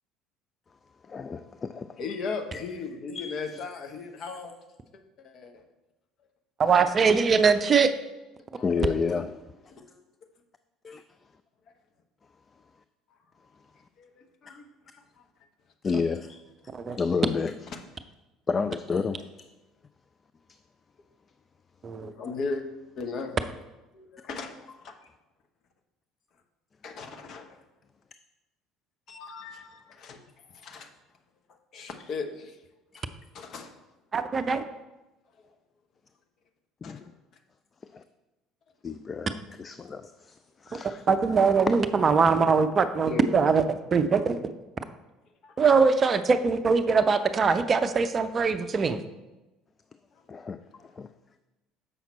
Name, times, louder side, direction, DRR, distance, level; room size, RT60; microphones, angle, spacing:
voice 1, 1.0-2.0 2.5-2.6 3.1-3.6 8.6-9.3 10.8-11.0 12.5-12.6 15.8-16.4 17.0-17.5 18.5-19.5 36.8-37.1 37.8-38.0 38.8-41.0 50.3-51.1, left 5 dB, 30° left, 0.3 m, -31 dB
voice 2, 2.0-4.5 5.2-5.6 8.6-9.2 9.7-10.0 14.4-14.6 14.9-15.2 16.9-17.0 17.7-17.8 22.0-22.6 23.0-23.4 23.9-24.9 26.8-27.6 29.1-30.9 31.7-32.6 33.0-33.1 33.3-33.8 36.8-37.0 42.5-42.6 42.9-43.4 43.9-44.2 45.4-45.5 50.1-50.2, left 4 dB, 50° left, 0.9 m, -37 dB
voice 3, 6.6-7.9 16.7-17.0 21.8-22.1 34.1-34.6 41.1-43.6 43.9-44.4 45.6-49.0, right 5 dB, 35° right, 0.5 m, -22 dB
7.0 x 5.8 x 4.2 m
figure-of-eight pair, 60°, 0 cm